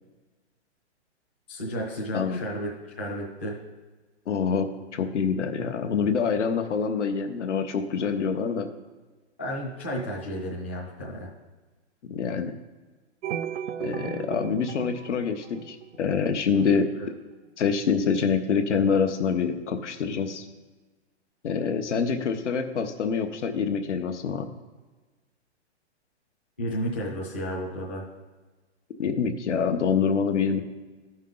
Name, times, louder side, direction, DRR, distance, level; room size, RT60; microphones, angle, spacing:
voice 1, 1.5-2.7 3.0-3.6 9.4-11.3 17.0-17.1 26.6-28.1, equal, 10° left, -6 dB, 0.4 m, -32 dB
voice 2, 4.3-4.7 4.9-8.7 12.0-12.5 13.8-16.9 17.6-20.4 21.4-24.5 29.0-30.6, left 6 dB, 80° left, 7 dB, 1.1 m, -26 dB
sound 1, 13.2-16.4, right 9 dB, 75° right, 0.6 m, -35 dB
13.5 x 5.5 x 3.9 m, 1.3 s
hypercardioid pair, 175°, 35 cm